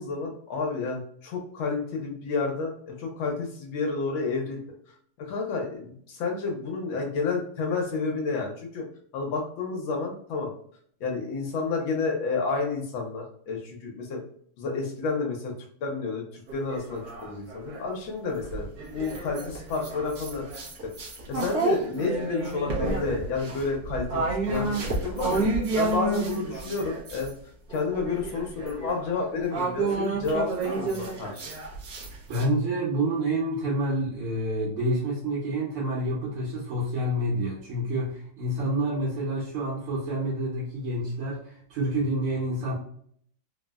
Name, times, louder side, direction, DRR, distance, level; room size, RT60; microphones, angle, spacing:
voice 1, 0.0-4.6 5.2-8.8 9.1-10.5 11.0-14.2 14.6-15.5 15.8-20.5 20.8-20.9 21.3-25.5 25.8-27.3 27.7-31.5, left 4 dB, 75° left, 0 dB, 1.3 m, -30 dB
sound 1, 16.5-17.9 18.4-27.3 27.7-32.4, right 3 dB, 65° right, 1.0 m, -30 dB
voice 2, 32.3-42.7, right 1 dB, 90° right, -6 dB, 1.7 m, -28 dB
3.8 x 2.1 x 2.2 m, 0.62 s
omnidirectional pair, 2.4 m